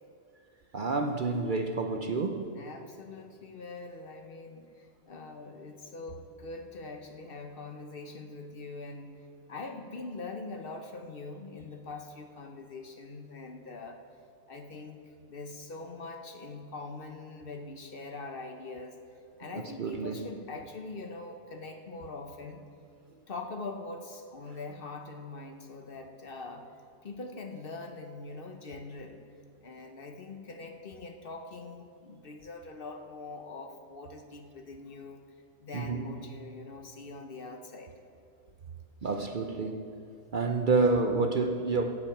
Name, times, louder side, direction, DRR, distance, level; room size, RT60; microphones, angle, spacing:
voice 1, 0.7-2.6 19.8-20.3 35.7-36.2 39.0-40.0 40.3-41.9, right 3 dB, 50° right, 6 dB, 0.6 m, -29 dB
voice 2, 2.5-9.2 9.5-14.0 14.5-15.0 15.3-19.0 19.4-22.6 23.3-26.7 27.0-29.2 29.6-35.2 35.6-37.9, left 3 dB, 45° left, 5 dB, 1.0 m, -43 dB
15.5 x 8.5 x 5.9 m, 2.5 s
omnidirectional pair, 1.4 m